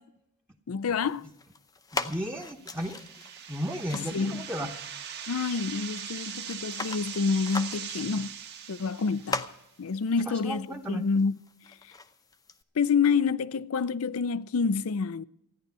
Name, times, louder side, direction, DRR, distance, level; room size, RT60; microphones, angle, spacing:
voice 1, 0.7-1.3 3.9-4.4 5.3-8.4 8.7-9.5 9.8-11.3 12.8-15.2, left 5 dB, 70° left, 0.5 m, -28 dB
sound 1, 1.0-12.6, left 3 dB, 15° left, 0.7 m, -41 dB
voice 2, 1.9-3.0 3.5-4.7 10.2-11.0, equal, 10° right, 1.0 m, -34 dB
rain stick, 2.6-9.6, right 8 dB, 50° right, 1.4 m, -40 dB
14.0 x 10.5 x 6.8 m
head